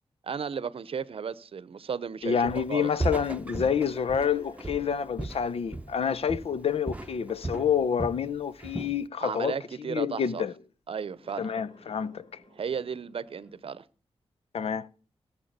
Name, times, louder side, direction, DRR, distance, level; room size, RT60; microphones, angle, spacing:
voice 1, 0.2-2.9 9.2-10.4 10.9-11.5 12.6-13.8, right 6 dB, 65° right, 0.7 m, -34 dB
voice 2, 2.2-9.6 9.9-10.5 11.4-12.3 14.5-14.9, left 7 dB, 70° left, 0.6 m, -28 dB
Walk footsteps, 2.5-2.7 3.0-6.0 6.3-6.6 6.9-8.3 8.6-9.0, right 2 dB, 15° right, 1.0 m, -35 dB
sound 1, 3.5-8.2 8.9-9.0 11.1-13.7, left 1 dB, 50° left, 3.2 m, -55 dB
18.0 x 7.4 x 6.6 m
wide cardioid pair, 95°, 10 cm